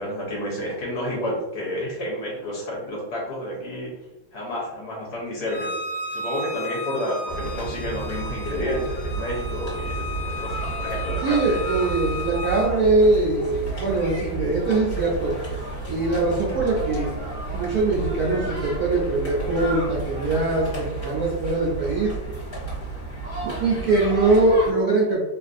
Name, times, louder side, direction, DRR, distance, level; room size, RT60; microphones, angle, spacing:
voice 1, 0.0-3.9 4.3-5.7 6.1-11.6, left 1 dB, 65° left, -4 dB, 1.2 m, -30 dB
Bowed string instrument, 5.5-12.7, left 2 dB, 80° left, 1.3 m, -34 dB
sound 1, 7.3-24.7, right 3 dB, 35° left, 1.2 m, -31 dB
voice 2, 11.2-15.4 15.9-17.1 17.5-22.1 23.6-25.2, right 2 dB, 75° right, -5 dB, 0.9 m, -22 dB
3.2 x 2.4 x 2.5 m, 1.0 s
omnidirectional pair, 2.2 m